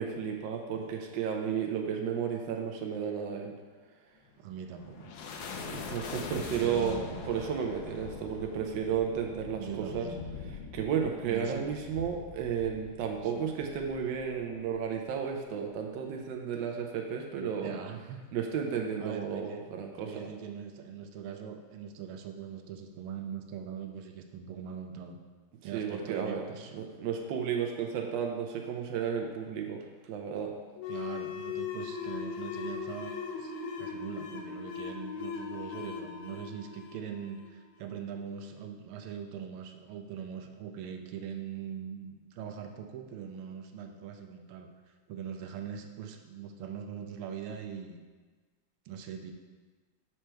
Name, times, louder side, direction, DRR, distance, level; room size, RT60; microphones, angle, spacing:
voice 1, 0.0-3.5 5.6-10.1 10.7-17.7 18.3-20.3 25.7-26.4 26.7-30.5, right 7 dB, 70° right, 2 dB, 1.2 m, -33 dB
sound 1, 4.3-15.0, left 5 dB, 70° left, 0.9 m, -44 dB
voice 2, 4.4-5.1 6.6-7.2 9.5-10.2 11.2-11.7 13.2-13.5 17.3-18.2 19.0-19.7 20.0-25.2 25.6-26.7 30.9-33.5 33.8-44.7 45.1-48.0 48.9-49.3, right 7 dB, 85° right, 5 dB, 1.5 m, -41 dB
sound 2, 30.8-38.0, left 6 dB, 85° left, 1.6 m, -39 dB
6.4 x 4.5 x 4.4 m, 1.4 s
omnidirectional pair, 2.3 m